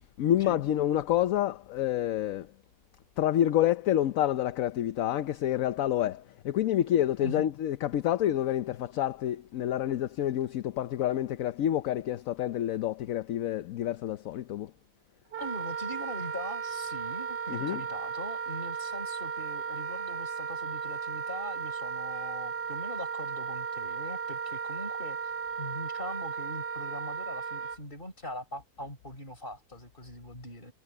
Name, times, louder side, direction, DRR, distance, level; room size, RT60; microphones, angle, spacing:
voice 1, 0.2-2.5 3.2-14.7 17.5-17.8, left 12 dB, 65° left, 1.0 m, -28 dB
Wind instrument woodwind instrument, 15.3-27.8, right 6 dB, 45° right, 1.0 m, -35 dB
voice 2, 15.4-25.2 25.6-30.7, left 1 dB, 30° left, 4.8 m, -42 dB
omnidirectional pair, 1.7 m